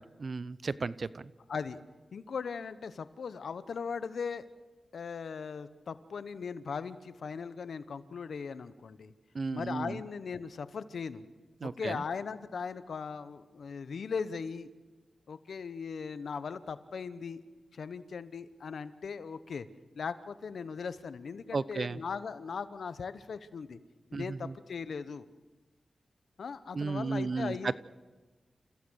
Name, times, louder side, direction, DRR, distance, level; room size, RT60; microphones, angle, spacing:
voice 1, 0.2-1.3 9.3-10.0 11.6-12.0 21.5-22.0 24.1-24.5 26.7-27.7, right 4 dB, 60° right, 17 dB, 0.7 m, -34 dB
voice 2, 1.5-1.8 2.1-4.5 4.9-9.1 9.5-11.2 11.6-14.7 15.3-17.4 17.7-19.7 19.9-23.8 24.1-25.3 26.4-27.7, left 5 dB, 80° left, 13 dB, 1.0 m, -39 dB
29.5 x 15.5 x 6.4 m, 1.2 s
cardioid pair, 55°, 0 cm